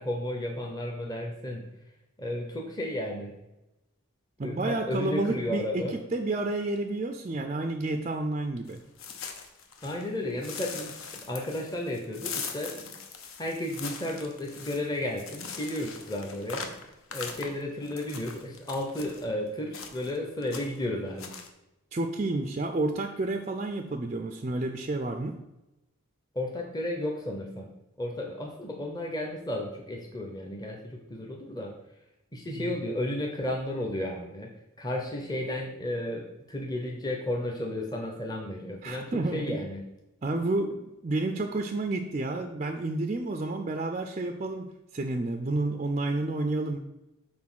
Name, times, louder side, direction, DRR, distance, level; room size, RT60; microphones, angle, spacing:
voice 1, 0.0-1.7 2.2-3.3 4.4-6.0 9.8-12.9 13.4-16.7 17.1-21.4 26.3-27.7 28.0-31.8 32.3-39.8, left 1 dB, 15° left, 1 dB, 0.7 m, -33 dB
voice 2, 4.4-5.8 6.1-8.8 21.9-25.4 32.5-32.7 38.8-39.6 40.2-44.7 44.9-46.8, right 2 dB, 30° right, 5 dB, 0.4 m, -30 dB
sound 1, 8.7-10.1 10.4-19.2 19.7-20.2 20.4-20.9 21.2-21.5, left 6 dB, 65° left, 0.9 m, -41 dB
6.1 x 3.9 x 6.1 m, 0.95 s
head